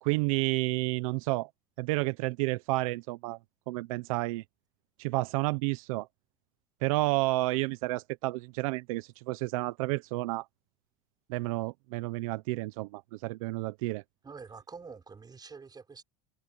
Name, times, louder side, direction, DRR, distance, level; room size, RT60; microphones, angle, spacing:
voice 1, 0.0-1.5 1.8-3.4 3.7-4.4 5.0-6.1 6.8-10.5 11.3-14.0, right 22 dB, 80° right, 1.1 m, -30 dB
voice 2, 14.2-16.0, right 5 dB, 25° right, 5.6 m, -46 dB
supercardioid pair, 100°, 17 cm